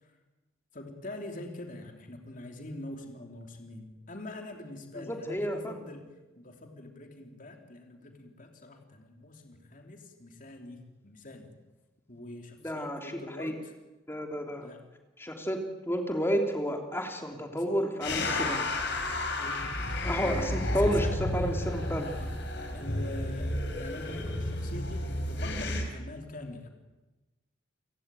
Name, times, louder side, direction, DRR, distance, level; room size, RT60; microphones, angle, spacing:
voice 1, 0.7-6.0 6.3-11.5 12.1-13.7 14.6-14.8 17.3-17.9 18.8-21.1 22.0-22.3 22.7-26.7, left 2 dB, 45° left, 4 dB, 3.2 m, -44 dB
voice 2, 4.9-5.8 12.6-13.5 14.1-14.7 15.2-15.6 15.9-18.6 20.0-22.1, equal, 10° left, 4 dB, 3.1 m, -31 dB
sound 1, 18.0-25.8, left 1 dB, 60° left, 4.6 m, -32 dB
30.0 x 17.0 x 9.2 m, 1.1 s
head